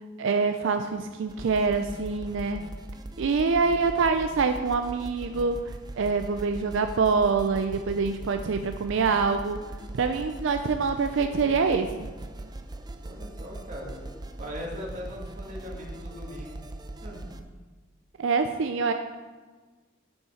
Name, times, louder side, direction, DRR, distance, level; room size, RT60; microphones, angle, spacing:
voice 1, 0.2-2.7 3.2-5.6 6.0-9.6 9.9-12.1 18.2-18.9, right 4 dB, 70° right, 7 dB, 0.5 m, -25 dB
sound 1, 1.3-17.4, right 1 dB, 20° right, 0.5 m, -40 dB
voice 2, 13.0-14.1 14.4-16.6 17.0-17.2, equal, 40° right, -3 dB, 1.9 m, -39 dB
9.4 x 5.4 x 4.9 m, 1.4 s
head